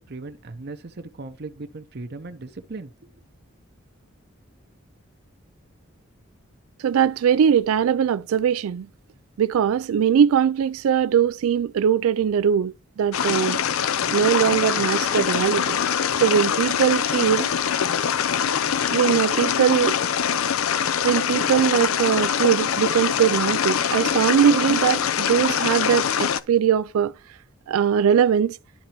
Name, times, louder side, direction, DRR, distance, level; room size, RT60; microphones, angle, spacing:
voice 1, 0.0-2.9, right 3 dB, 50° right, 0.6 m, -37 dB
voice 2, 6.8-8.9 9.4-13.6 14.1-15.8 16.2-17.5 18.9-20.0 21.0-27.1 27.7-28.6, right 8 dB, 85° right, 0.3 m, -21 dB
sound 1, 13.1-26.4, left 8 dB, 80° left, 0.5 m, -23 dB
11.5 x 3.9 x 2.9 m
head